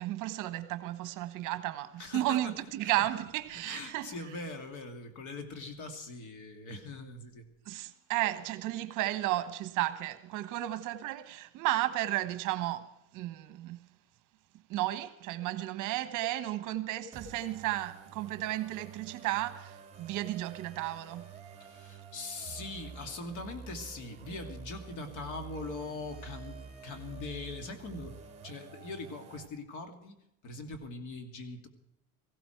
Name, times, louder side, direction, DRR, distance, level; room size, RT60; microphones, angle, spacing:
voice 1, 0.0-4.1 7.7-13.8 14.7-21.3, right 15 dB, 55° right, 1.2 m, -33 dB
voice 2, 2.0-3.2 3.5-7.5 21.6-30.2 30.4-31.7, left 3 dB, 50° left, 2.6 m, -42 dB
sound 1, 17.1-29.5, right 6 dB, 15° right, 2.8 m, -48 dB
18.0 x 15.5 x 4.6 m
supercardioid pair, 125°, 38 cm